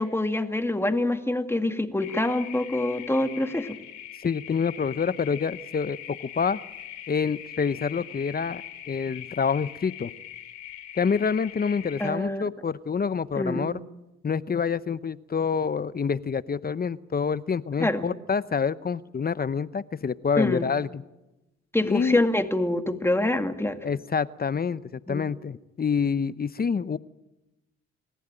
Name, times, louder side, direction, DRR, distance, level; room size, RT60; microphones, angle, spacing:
voice 1, 0.0-3.8 12.0-12.4 13.4-13.7 17.8-18.1 20.4-20.7 21.7-23.8 25.1-25.2, left 1 dB, 10° left, 6 dB, 2.1 m, -25 dB
sound 1, 2.0-12.1, left 11 dB, 70° left, 3.3 m, -42 dB
voice 2, 4.2-6.6 7.1-10.1 11.0-13.7 14.2-21.0 21.8-22.2 23.8-27.0, left 6 dB, 30° left, 16 dB, 0.8 m, -27 dB
27.5 x 15.0 x 9.0 m, 1.0 s
cardioid pair, 90°, 30 cm